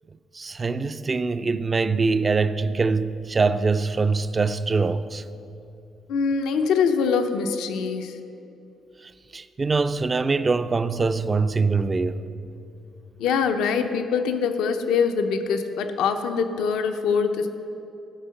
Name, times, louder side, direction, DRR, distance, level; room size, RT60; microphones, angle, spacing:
voice 1, 0.3-5.2 9.0-12.2, right 4 dB, 30° right, 0.4 m, -23 dB
voice 2, 6.1-8.2 13.2-17.5, left 6 dB, 90° left, 0.7 m, -23 dB
15.0 x 5.6 x 6.5 m
cardioid pair, 90°, 0 cm